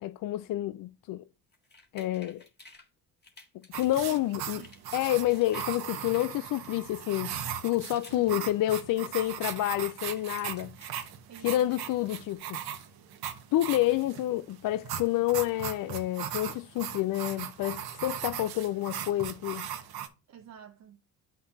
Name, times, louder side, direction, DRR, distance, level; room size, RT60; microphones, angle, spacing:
voice 1, 0.0-1.2 1.9-2.4 3.5-4.6 4.9-7.3 7.6-10.7 11.4-12.6 13.5-19.7, left 15 dB, 55° left, 0.5 m, -29 dB
sound 1, 1.5-2.9 3.2-4.0 4.4-5.7 6.0-7.0 7.5-8.3 8.6-11.1 11.4-12.4, left 3 dB, 25° left, 1.8 m, -54 dB
sound 2, 3.7-20.1, right 9 dB, 65° right, 1.2 m, -38 dB
voice 2, 3.9-4.2 4.5-5.0 8.1-8.6 11.3-11.7 14.0-14.1 20.3-21.0, right 8 dB, 40° right, 0.7 m, -48 dB
8.1 x 6.0 x 2.7 m
supercardioid pair, 70°, 41 cm